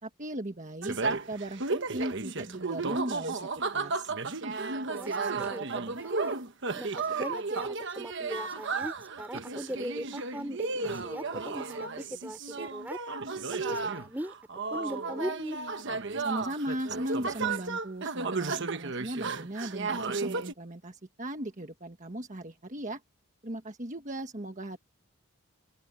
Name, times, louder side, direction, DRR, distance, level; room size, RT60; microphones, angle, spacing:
voice 1, 0.0-4.1 16.2-23.0 23.4-24.8, right 1 dB, 35° right, 1.4 m, -38 dB
sound 1, 0.8-20.5, right 4 dB, 55° right, 1.2 m, -33 dB
voice 2, 4.9-6.3 6.7-13.0 13.5-14.3 14.7-15.6, equal, 10° right, 4.4 m, -39 dB
open air
head